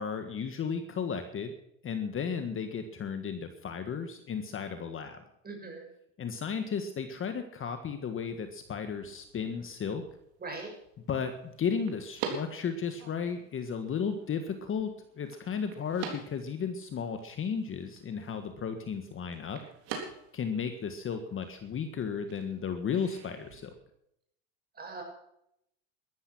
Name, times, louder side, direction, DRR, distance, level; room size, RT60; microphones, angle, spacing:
voice 1, 0.0-1.5 1.8-5.2 6.2-10.0 11.1-14.9 15.2-19.6 20.3-23.7, left 6 dB, 35° left, 7 dB, 1.6 m, -34 dB
voice 2, 5.4-5.9 10.4-10.7 24.8-25.0, right 3 dB, 25° right, 2 dB, 6.5 m, -40 dB
sound 1, 8.2-23.7, right 6 dB, 70° right, 3.8 m, -46 dB
13.5 x 13.0 x 6.1 m, 0.76 s
supercardioid pair, 105°, 37 cm